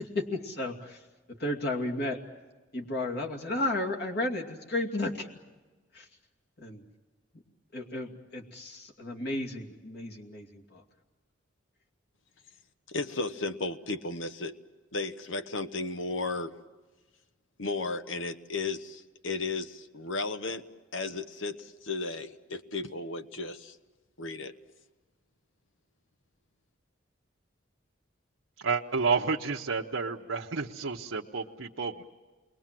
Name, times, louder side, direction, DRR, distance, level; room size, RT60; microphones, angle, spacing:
voice 1, 0.0-2.2 2.7-5.3 5.9-6.1 6.6-6.8 7.3-7.4 7.7-10.8, left 2 dB, 55° left, 0 dB, 2.6 m, -33 dB
voice 2, 12.9-14.6 14.9-16.5 17.6-20.6 20.9-23.8 24.2-24.5, left 3 dB, 85° left, 10 dB, 1.2 m, -34 dB
voice 3, 28.6-32.0, right 5 dB, 90° right, 0 dB, 1.0 m, -30 dB
29.0 x 22.0 x 7.6 m, 1.3 s
head